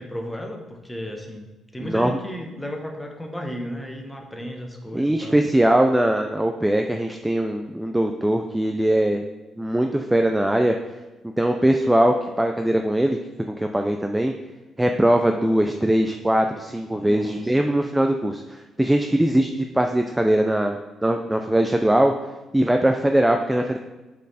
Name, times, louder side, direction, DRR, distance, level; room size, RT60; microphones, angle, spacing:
voice 1, 0.0-1.5 1.7-5.4 16.9-17.5, equal, 10° left, 2 dB, 1.2 m, -34 dB
voice 2, 1.8-2.1 4.9-9.2 9.6-10.8 11.4-13.2 13.5-14.3 14.8-22.1 22.5-23.8, right 1 dB, 10° right, 4 dB, 0.4 m, -21 dB
8.1 x 4.3 x 4.2 m, 1.1 s
cardioid pair, 90°, 0 cm